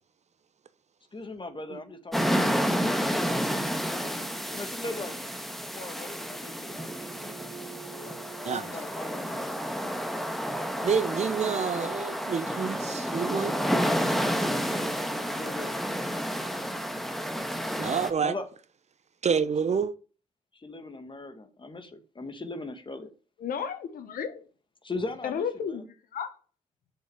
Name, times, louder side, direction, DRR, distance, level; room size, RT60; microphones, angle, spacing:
voice 1, 1.1-3.0 3.9-4.2 4.5-5.2 5.7-7.0 7.9-9.6 10.7-10.9 15.3-15.8 18.2-18.5 19.4-19.8 20.5-23.1 24.8-25.8, left 2 dB, 30° left, 2.0 m, -40 dB
sound 1, 2.1-18.1, equal, ahead, 1.6 m, -30 dB
sound 2, 4.4-15.9, right 10 dB, 75° right, 2.2 m, -52 dB
voice 2, 10.8-13.6 17.8-18.3 19.2-19.9, right 6 dB, 45° right, 0.9 m, -28 dB
voice 3, 23.4-24.4 25.2-26.3, left 7 dB, 70° left, 1.3 m, -33 dB
7.1 x 6.0 x 5.5 m
hypercardioid pair, 40°, 15 cm